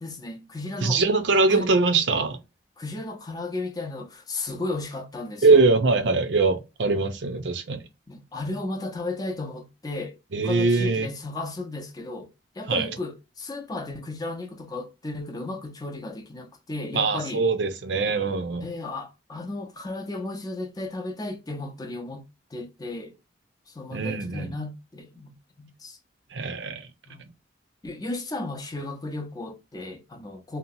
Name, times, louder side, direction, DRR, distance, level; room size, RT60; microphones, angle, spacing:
voice 1, 0.0-1.0 1.5-1.7 2.8-5.6 8.1-12.3 12.6-17.4 18.6-22.2 22.5-23.1 23.7-26.0 27.1-27.2 27.8-30.6, left 2 dB, 20° left, 0.5 m, -34 dB
voice 2, 0.8-2.4 5.4-7.8 10.3-11.1 12.7-12.9 16.9-18.6 23.9-24.5 26.3-26.9, right 3 dB, 75° right, 0.6 m, -22 dB
2.8 x 2.3 x 2.6 m
head